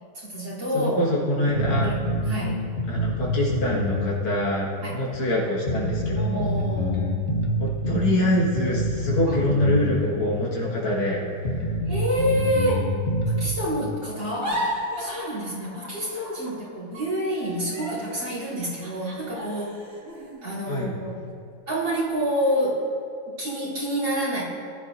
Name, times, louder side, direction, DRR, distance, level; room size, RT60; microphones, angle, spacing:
voice 1, 0.1-1.1 1.7-2.6 4.8-5.0 6.1-7.1 9.3-9.4 11.9-12.9 13.4-19.7 20.4-21.2 21.7-22.8 23.3-24.4, equal, 60° right, -7 dB, 4.3 m, -28 dB
voice 2, 0.7-1.9 2.9-6.5 7.6-11.2 20.7-20.9, left 1 dB, 80° left, -6 dB, 2.7 m, -25 dB
sound 1, 1.5-4.1 4.4-4.5 5.1-5.2 5.7-9.9 10.2-10.3 10.9-11.0 11.4-13.5, equal, 40° left, 1.1 m, -26 dB
sound 2, 14.2-16.7 16.9-21.3 21.8-22.0 22.4-22.9, equal, 40° right, 2.6 m, -35 dB
20.0 x 12.0 x 2.7 m, 2.5 s
omnidirectional pair, 2.3 m